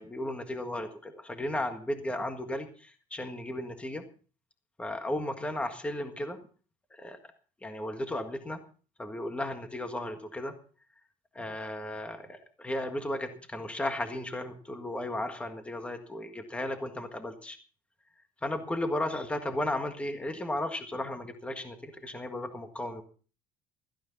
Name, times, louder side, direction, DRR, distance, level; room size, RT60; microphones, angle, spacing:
voice 1, 0.0-4.0 4.8-6.4 6.9-7.2 7.6-8.6 9.0-10.5 11.3-17.6 18.4-23.0, left 1 dB, 10° left, 6 dB, 1.7 m, -35 dB
16.0 x 14.5 x 4.0 m, 0.40 s
cardioid pair, 130°, 13 cm